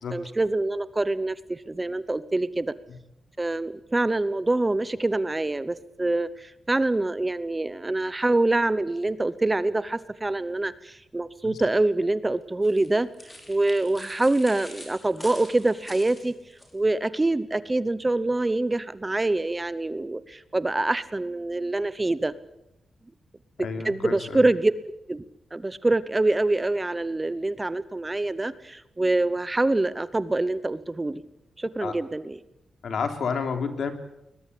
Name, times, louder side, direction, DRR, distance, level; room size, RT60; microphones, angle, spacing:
voice 1, 0.1-2.7 3.4-13.1 13.5-16.3 16.7-22.3 23.6-24.7 25.1-25.2 25.5-31.2 31.6-32.4, right 2 dB, 15° right, 15 dB, 0.8 m, -25 dB
sound 1, 12.6-16.7, left 1 dB, 15° left, 5.4 m, -45 dB
voice 2, 23.6-24.4 31.8-32.0 32.8-33.9, left 5 dB, 65° left, 7 dB, 3.3 m, -30 dB
22.0 x 21.0 x 8.5 m, 0.85 s
wide cardioid pair, 170°, 0 cm